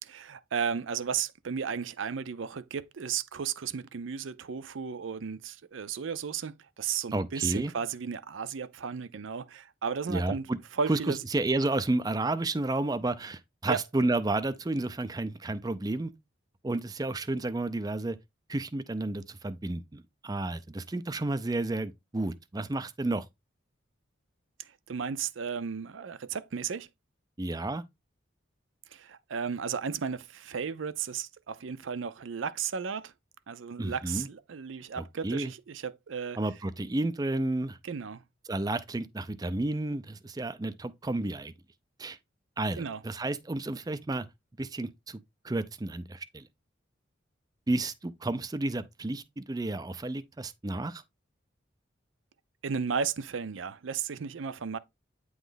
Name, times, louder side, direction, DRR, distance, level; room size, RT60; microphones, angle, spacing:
voice 1, 0.0-10.5 10.8-11.2 13.7-13.8 24.9-26.9 28.9-33.1 33.5-36.4 37.8-38.2 42.8-43.0 52.6-54.8, right 6 dB, 80° right, 0.5 m, -34 dB
voice 2, 7.1-7.7 10.1-10.6 10.9-16.1 16.6-18.2 18.5-23.2 27.4-27.8 33.8-34.3 35.0-35.5 36.4-37.8 38.5-41.5 42.0-42.2 42.6-44.3 44.6-46.5 47.7-51.0, right 2 dB, 20° right, 0.5 m, -31 dB
9.1 x 3.1 x 3.9 m
head